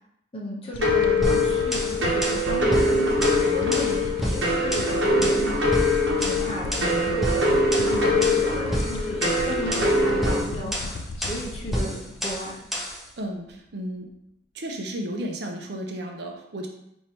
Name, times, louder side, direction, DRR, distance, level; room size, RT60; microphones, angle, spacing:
voice 1, 0.3-12.6, equal, 30° left, -3 dB, 0.8 m, -34 dB
sound 1, 0.7-13.1 13.5-13.6, left 2 dB, 75° left, 0.3 m, -36 dB
sound 2, 0.8-10.4, left 2 dB, 85° right, 0.9 m, -23 dB
sound 3, 1.2-13.0, equal, ahead, 0.5 m, -30 dB
voice 2, 13.2-14.1 14.5-16.7, right 1 dB, 60° right, 2 dB, 0.6 m, -33 dB
3.3 x 2.7 x 4.2 m, 0.79 s
head